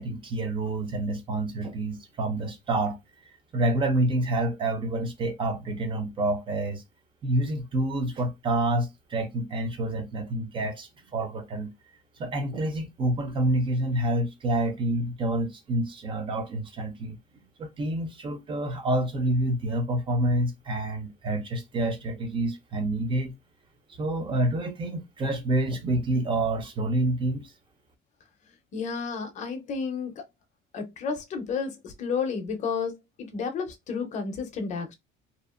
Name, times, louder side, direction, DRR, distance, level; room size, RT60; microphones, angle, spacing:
voice 1, 0.0-3.0 3.2-6.8 7.2-11.7 12.2-17.2 17.6-23.3 24.0-27.4, right 1 dB, 25° right, 0.5 m, -28 dB
voice 2, 28.7-30.2 30.7-34.9, left 5 dB, 35° left, 0.6 m, -31 dB
2.8 x 2.4 x 2.3 m
cardioid pair, 170°, 21 cm